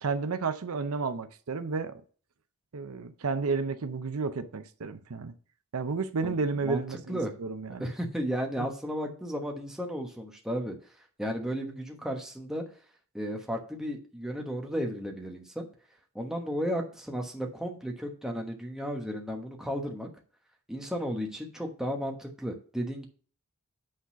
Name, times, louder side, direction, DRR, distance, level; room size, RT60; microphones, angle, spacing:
voice 1, 0.0-2.0 2.7-5.3 5.7-7.8, right 4 dB, 75° right, 0.6 m, -32 dB
voice 2, 6.2-6.8 7.1-7.3 7.8-10.7 11.2-12.6 13.1-15.7 16.1-20.1 20.7-23.1, equal, ahead, 1.1 m, -34 dB
8.7 x 4.0 x 5.6 m
head